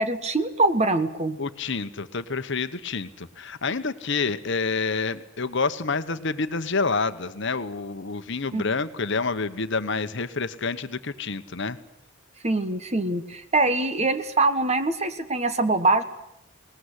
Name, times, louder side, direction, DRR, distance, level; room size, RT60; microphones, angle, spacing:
voice 1, 0.0-1.4 8.5-8.6 12.4-16.0, right 2 dB, 30° right, 10 dB, 1.4 m, -23 dB
voice 2, 1.4-11.8, left 4 dB, 55° left, 11 dB, 1.1 m, -28 dB
21.0 x 19.0 x 9.9 m, 0.80 s
head